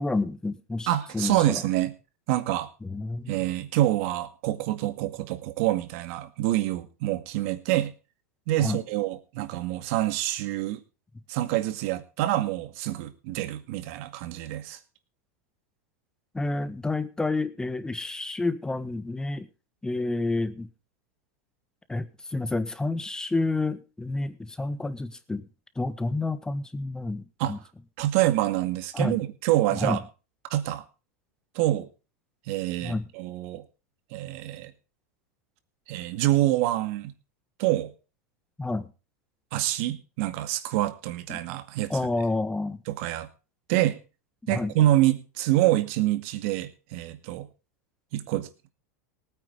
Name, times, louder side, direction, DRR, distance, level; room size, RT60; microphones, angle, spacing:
voice 1, 0.0-1.6 2.8-3.5 8.6-8.8 16.3-19.5 19.8-20.7 21.9-25.5 25.8-27.6 28.9-29.2 29.7-30.0 32.8-33.1 38.6-38.9 41.3-41.4 41.9-42.8 44.4-44.7, left 2 dB, 10° left, 13 dB, 1.4 m, -29 dB
voice 2, 0.9-1.9 2.3-2.7 3.3-7.9 8.5-10.8 11.3-14.8 27.4-27.5 28.0-30.0 30.5-30.8 31.6-31.9 32.5-33.6 34.1-34.7 35.9-37.1 37.6-37.9 39.5-41.9 42.9-43.3 43.7-44.0 44.5-47.5 48.1-48.5, right 14 dB, 60° right, 10 dB, 2.0 m, -26 dB
19.0 x 9.3 x 4.0 m, 0.33 s
supercardioid pair, 115°, 8 cm